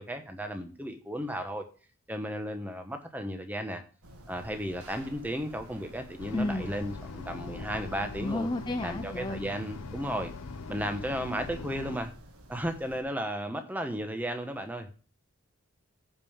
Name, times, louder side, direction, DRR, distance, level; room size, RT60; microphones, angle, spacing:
voice 1, 0.0-1.6 2.1-3.8 4.3-8.5 8.8-10.3 10.7-12.1 12.5-14.9, equal, 5° right, 6 dB, 1.2 m, -34 dB
sound 1, 4.0-9.0, right 2 dB, 65° right, 5.7 m, -60 dB
sound 2, 4.0-13.0, right 1 dB, 80° right, 2.0 m, -50 dB
sound 3, 6.2-12.0, left 4 dB, 70° left, 0.6 m, -42 dB
voice 2, 6.3-6.7 8.2-9.4, left 2 dB, 20° left, 7 dB, 0.5 m, -32 dB
14.5 x 5.3 x 3.6 m, 0.37 s
head